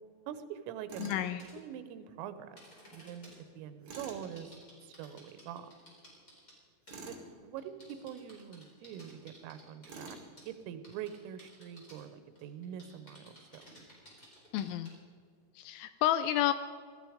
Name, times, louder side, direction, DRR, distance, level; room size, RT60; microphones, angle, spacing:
voice 1, 0.3-2.6 2.9-4.5 4.8-5.8 7.1-10.2 10.5-13.6, right 9 dB, 85° right, 11 dB, 3.5 m, -44 dB
Tools, 0.9-1.2 3.8-4.2 6.9-7.3 9.9-10.3, right 3 dB, 55° right, 1.6 m, -46 dB
voice 2, 1.0-1.4 14.5-14.9 15.6-16.5, left 12 dB, 85° left, 11 dB, 2.8 m, -30 dB
sound 1, 1.4-1.5 2.6-3.4 3.9-6.6 6.9-7.1 7.6-10.5 10.8-12.0 12.3-15.0, equal, 20° left, 4.0 m, -56 dB
18.0 x 13.0 x 5.0 m, 2.1 s
omnidirectional pair, 5.8 m